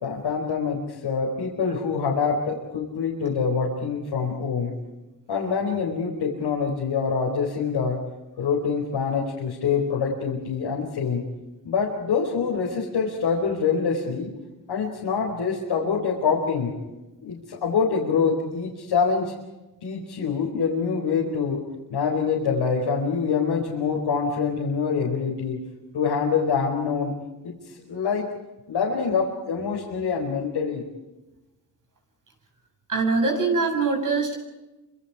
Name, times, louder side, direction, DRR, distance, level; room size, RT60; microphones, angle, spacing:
voice 1, 0.0-4.7 5.3-8.0 8.4-11.2 11.6-14.3 14.7-16.7 17.2-19.3 19.8-21.6 21.9-25.6 25.9-27.1 27.4-28.3 28.7-30.8, left 5 dB, 85° left, -3 dB, 4.8 m, -25 dB
voice 2, 32.9-34.5, right 4 dB, 50° right, 2 dB, 7.5 m, -23 dB
29.0 x 26.5 x 4.9 m, 1.0 s
cardioid pair, 110°, 42 cm